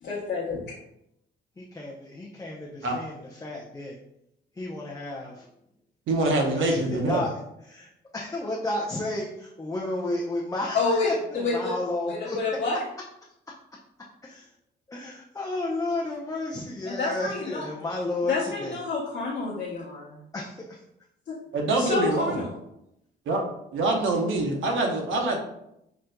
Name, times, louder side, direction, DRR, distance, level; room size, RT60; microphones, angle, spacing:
voice 1, 0.0-0.6 10.7-11.8 12.1-12.8 16.9-17.7 18.2-20.2 21.3-21.4 21.8-22.6, left 3 dB, 50° left, -5 dB, 0.9 m, -28 dB
voice 2, 1.6-4.0 4.5-5.5 6.3-6.8 7.1-7.3 7.7-12.4 14.2-14.5 14.9-18.4 18.6-18.8 20.3-20.8, left 2 dB, 15° left, -3 dB, 0.5 m, -32 dB
voice 3, 6.1-7.2 21.5-22.4 23.3-23.4 23.7-25.4, right 2 dB, 75° right, 2 dB, 0.8 m, -25 dB
5.8 x 2.5 x 2.2 m, 0.80 s
cardioid pair, 90°, 20 cm